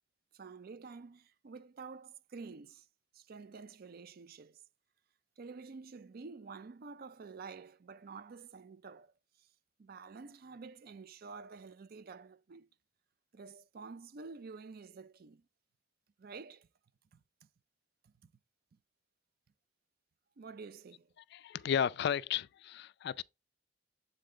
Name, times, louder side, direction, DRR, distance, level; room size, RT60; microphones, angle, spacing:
voice 1, 0.3-2.9 3.1-4.6 5.4-9.5 9.8-12.7 13.3-15.4 16.2-16.7 17.1-17.2 18.0-18.1 20.4-21.1, right 4 dB, 50° right, 0.4 m, -49 dB
voice 2, 21.3-23.2, left 8 dB, 60° left, 0.3 m, -33 dB
7.7 x 3.7 x 3.7 m
head